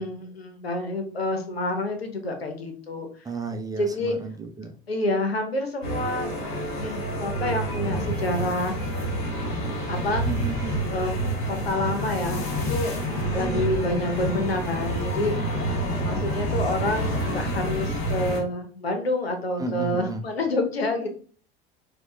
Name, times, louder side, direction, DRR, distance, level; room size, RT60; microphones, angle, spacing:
voice 1, 0.0-3.1 3.8-4.2 4.9-6.3 6.8-8.8 9.9-10.2 10.9-12.4 12.7-15.3 16.0-21.1, left 2 dB, 90° left, 6 dB, 0.8 m, -28 dB
voice 2, 3.2-4.7 10.3-10.9 13.4-13.7 19.6-20.3, right 3 dB, 10° right, 5 dB, 0.6 m, -33 dB
sound 1, 5.8-18.4, right 1 dB, 45° left, 1.8 m, -28 dB
4.2 x 2.4 x 3.1 m, 0.42 s
figure-of-eight pair, 70°, 30 cm